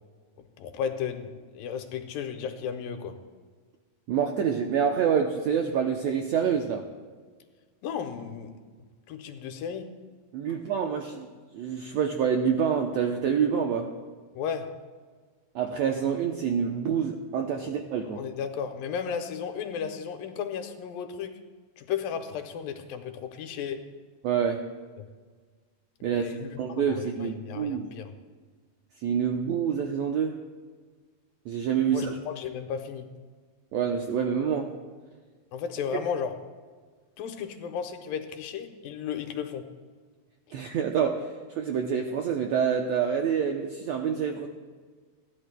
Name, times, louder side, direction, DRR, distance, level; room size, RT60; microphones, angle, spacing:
voice 1, 0.6-3.2 7.8-8.5 9.1-9.9 14.3-14.8 17.6-17.7 18.0-21.4 21.8-23.8 25.0-25.1 26.0-28.1 31.9-33.1 35.5-36.4 37.2-39.7, left 7 dB, 85° left, 6 dB, 2.5 m, -34 dB
voice 2, 4.1-6.8 10.3-11.3 11.5-13.9 15.5-18.2 24.2-24.6 26.0-26.2 26.6-27.9 29.0-30.4 31.4-32.1 33.7-34.7 40.5-44.5, right 7 dB, 85° right, 3 dB, 1.5 m, -27 dB
29.0 x 11.0 x 2.2 m, 1.5 s
omnidirectional pair, 4.0 m